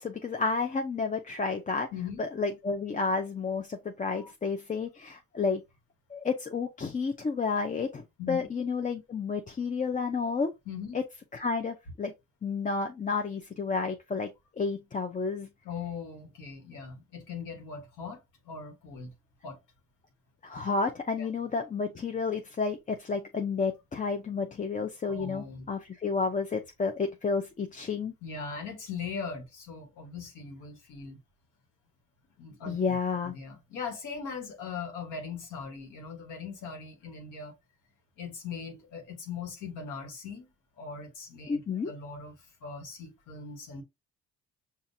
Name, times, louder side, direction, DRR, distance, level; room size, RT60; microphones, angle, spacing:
voice 1, 0.0-1.9 2.2-5.6 6.1-10.5 11.3-12.1 12.4-14.3 14.6-15.5 20.4-28.1 32.7-33.3 41.5-41.9, left 4 dB, 25° left, 0.5 m, -31 dB
voice 2, 1.9-2.2 4.1-4.3 8.2-8.5 10.7-11.0 15.6-19.1 19.4-19.6 21.2-21.3 25.1-25.7 28.2-31.2 32.4-32.8 33.2-37.5 38.2-40.5 40.8-43.8, left 5 dB, 90° left, 1.4 m, -40 dB
5.6 x 2.5 x 2.7 m
cardioid pair, 90°, 30 cm